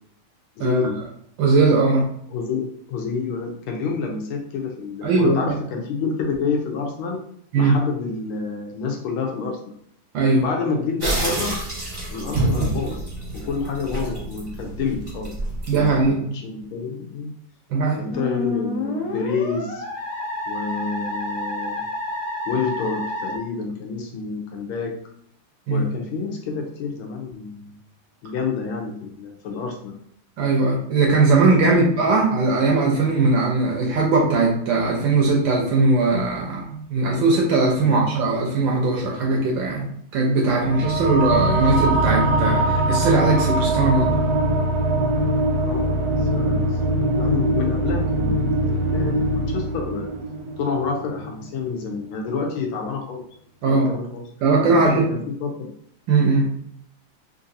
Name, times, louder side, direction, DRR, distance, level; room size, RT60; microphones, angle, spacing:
voice 1, 0.6-1.0 2.3-7.2 7.6-9.7 10.4-11.6 12.1-13.1 13.3-15.3 15.7-17.4 18.0-19.8 20.5-21.8 22.5-25.0 25.7-27.7 28.2-29.9 31.6-32.1 37.8-38.0 45.6-45.9 46.2-50.1 50.6-53.2 53.6-54.3 54.7-55.7, left 5 dB, 80° left, 1 dB, 1.4 m, -28 dB
voice 2, 1.4-2.1 5.0-5.4 7.5-7.8 10.1-10.4 15.7-16.4 17.7-18.0 25.7-25.8 30.4-39.9 40.1-44.2 53.6-53.9 54.4-55.0 56.1-56.5, right 3 dB, 70° right, -1 dB, 1.2 m, -19 dB
sound 1, 11.0-16.1, right 2 dB, 30° right, 0.8 m, -27 dB
Musical instrument, 18.1-23.4, left 2 dB, 55° left, 0.9 m, -29 dB
sound 2, 40.6-51.5, right 1 dB, 90° right, 0.9 m, -22 dB
3.8 x 2.5 x 2.6 m, 0.66 s
omnidirectional pair, 2.4 m